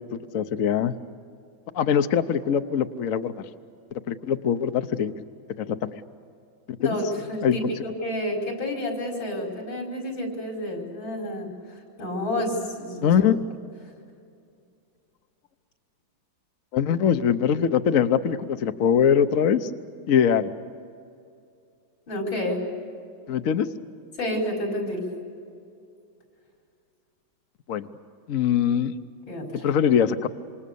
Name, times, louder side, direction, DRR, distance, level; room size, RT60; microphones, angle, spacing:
voice 1, 0.1-0.9 1.7-3.5 4.1-5.1 5.6-6.0 6.8-7.0 7.4-7.6 13.0-13.4 16.7-19.7 20.1-20.5 23.3-23.7 27.7-27.9 28.3-28.9 29.6-30.3, left 8 dB, 55° left, 9 dB, 1.0 m, -22 dB
voice 2, 6.8-13.1 22.1-22.6 24.2-25.0 29.3-29.7, left 1 dB, 85° left, 0 dB, 5.8 m, -30 dB
26.5 x 26.5 x 6.9 m, 2.4 s
omnidirectional pair, 2.0 m